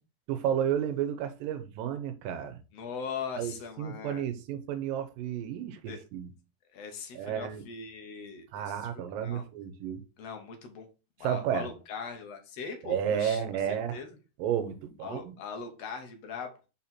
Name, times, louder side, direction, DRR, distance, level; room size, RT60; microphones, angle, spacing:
voice 1, 0.3-2.6 3.4-6.3 7.1-7.6 8.5-10.0 11.2-11.7 12.8-14.0 14.4-15.4, right 9 dB, 85° right, 2.5 m, -32 dB
voice 2, 2.7-4.3 5.9-6.0 6.7-9.4 10.2-10.9 11.2-13.4 13.7-14.1 15.0-16.5, left 6 dB, 65° left, 1.7 m, -40 dB
5.6 x 4.3 x 4.3 m
omnidirectional pair, 3.9 m